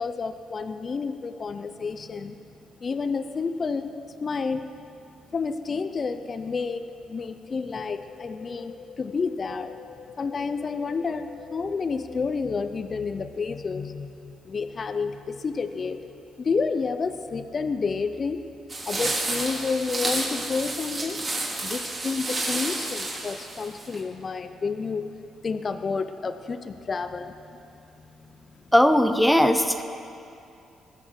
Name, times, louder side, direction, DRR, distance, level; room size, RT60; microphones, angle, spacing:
voice 1, 0.0-2.4 2.8-3.9 4.2-4.7 5.3-9.7 10.2-16.0 16.4-18.4 18.9-21.2 21.6-25.1 25.4-27.6 28.2-28.4, left 4 dB, 40° left, 9 dB, 0.6 m, -30 dB
sound 1, 7.5-12.5, left 7 dB, 65° left, 2.4 m, -46 dB
sound 2, 18.7-24.0, right 2 dB, 35° right, 3.0 m, -30 dB
voice 2, 28.7-29.8, equal, 5° left, 8 dB, 0.8 m, -19 dB
21.0 x 7.0 x 6.0 m, 2.6 s
cardioid pair, 90°, 0 cm